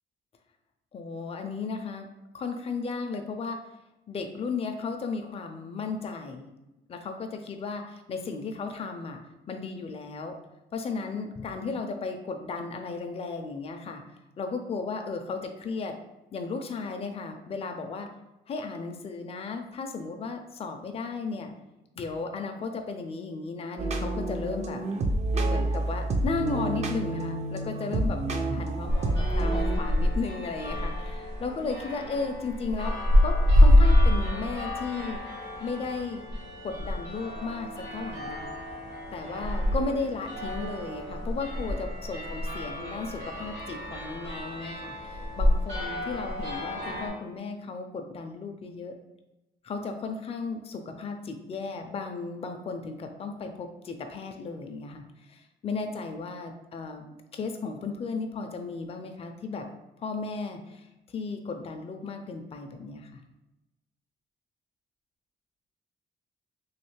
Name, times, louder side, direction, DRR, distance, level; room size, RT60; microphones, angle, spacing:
voice 1, 0.9-2.1 2.3-3.6 4.1-6.5 6.9-9.2 9.5-10.3 10.7-14.0 14.4-16.0 16.3-18.1 18.5-21.5 22.0-24.8 25.4-28.2 28.5-32.9 33.2-35.2 35.6-36.2 36.6-38.4 39.1-48.9 49.6-55.0 55.3-57.1 57.3-59.7 60.0-60.9 61.1-63.2, left 4 dB, 35° left, 4 dB, 0.4 m, -35 dB
sound 1, 23.8-29.8, right 2 dB, 40° right, 0.4 m, -28 dB
sound 2, 28.9-47.1, left 1 dB, 75° right, 1.4 m, -27 dB
3.2 x 2.7 x 3.1 m, 0.98 s
cardioid pair, 105°, 18 cm